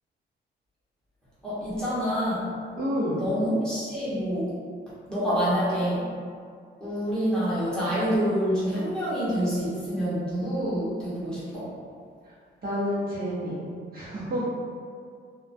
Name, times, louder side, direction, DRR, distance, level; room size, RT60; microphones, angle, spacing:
voice 1, 1.4-2.5 3.2-4.5 5.1-6.1 6.8-11.7, equal, 5° left, -12 dB, 0.9 m, -27 dB
voice 2, 2.8-3.2 12.2-12.3 12.6-13.6 13.9-14.5, equal, 50° right, -9 dB, 0.7 m, -29 dB
2.3 x 2.2 x 2.5 m, 2.1 s
cardioid pair, 115°, 20 cm